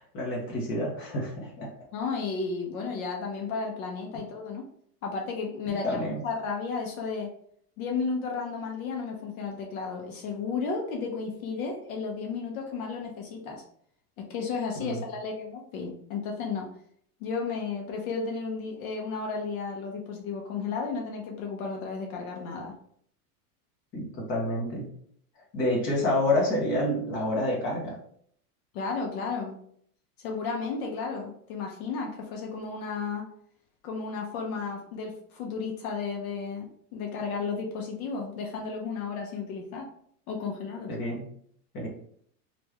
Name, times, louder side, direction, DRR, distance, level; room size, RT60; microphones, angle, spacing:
voice 1, 0.0-1.7 5.7-6.2 14.8-15.0 23.9-24.9 25.5-28.0 40.9-41.3 41.7-41.9, left 1 dB, 25° left, -3 dB, 1.0 m, -28 dB
voice 2, 1.9-4.6 5.0-6.0 6.2-7.3 7.8-13.6 14.2-16.7 17.2-22.7 28.7-29.6 30.2-33.3 33.8-39.9 40.3-40.9, left 4 dB, 65° left, 1 dB, 0.9 m, -33 dB
3.0 x 2.6 x 3.3 m, 0.63 s
supercardioid pair, 160°, 46 cm